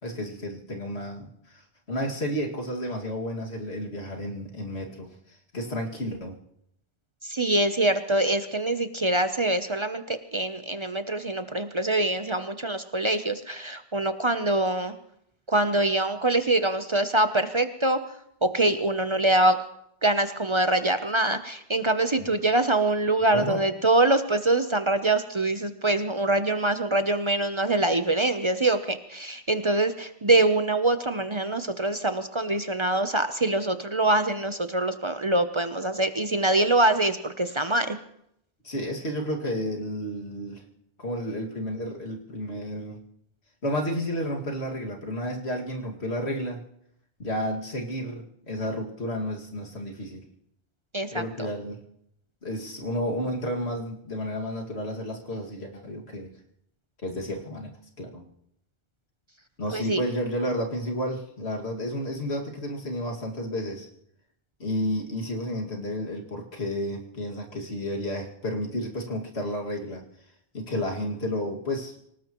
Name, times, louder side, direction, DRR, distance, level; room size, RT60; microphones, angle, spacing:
voice 1, 0.0-1.6 1.9-6.4 22.2-22.3 23.3-23.6 38.6-40.6 41.0-43.0 43.6-46.6 47.2-50.2 51.1-51.8 52.4-56.3 57.0-58.3 59.6-63.9 64.6-70.0 70.5-71.9, equal, 85° left, 0 dB, 2.5 m, -31 dB
voice 2, 7.2-14.9 15.5-18.0 18.4-19.6 20.0-38.0 50.9-51.5 59.7-60.0, right 2 dB, 30° right, 9 dB, 0.7 m, -24 dB
25.5 x 18.5 x 3.0 m, 0.75 s
omnidirectional pair, 1.1 m